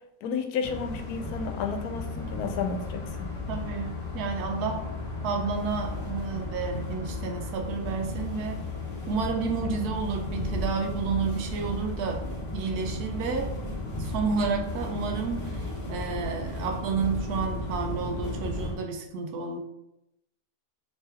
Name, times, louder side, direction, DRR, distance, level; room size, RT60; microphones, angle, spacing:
voice 1, 0.2-3.3, left 5 dB, 80° left, 6 dB, 1.1 m, -32 dB
sound 1, 0.6-18.7, left 2 dB, 30° left, 0.7 m, -34 dB
voice 2, 3.5-4.8 5.2-8.6 9.1-13.5 14.0-19.6, right 5 dB, 80° right, 4 dB, 1.1 m, -31 dB
3.3 x 3.2 x 3.3 m, 0.84 s
omnidirectional pair, 1.6 m